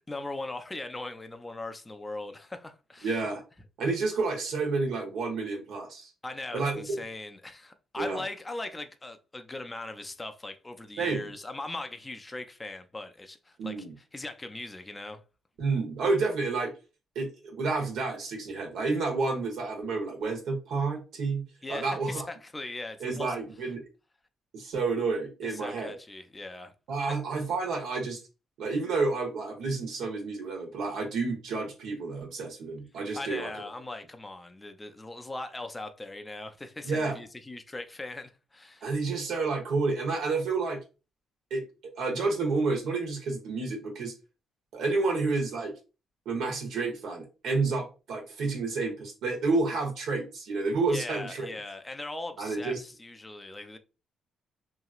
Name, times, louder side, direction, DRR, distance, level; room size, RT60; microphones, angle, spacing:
voice 1, 0.1-3.2 6.2-15.2 21.6-23.3 25.4-26.7 27.1-27.2 33.1-38.9 50.9-53.8, left 2 dB, 15° left, 0.4 m, -40 dB
voice 2, 3.0-3.4 3.8-6.1 6.5-7.0 8.0-8.2 11.0-11.3 13.6-13.9 15.6-16.7 17.1-22.2 23.0-23.8 24.5-25.9 26.9-28.2 28.6-33.5 36.8-37.2 38.8-40.8 41.5-41.6 42.0-44.1 44.7-45.7 46.2-51.5 52.4-52.8, right 3 dB, 80° right, 1.1 m, -30 dB
3.0 x 2.6 x 2.4 m
cardioid pair, 90°, 0 cm